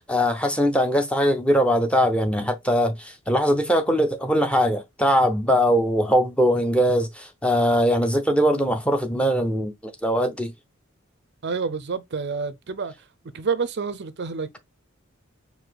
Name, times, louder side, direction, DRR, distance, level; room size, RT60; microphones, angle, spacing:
voice 1, 0.0-10.5, equal, 5° left, 0.7 m, -21 dB
voice 2, 11.4-12.9 13.3-14.6, right 5 dB, 55° right, 0.5 m, -28 dB
4.7 x 2.7 x 3.9 m
head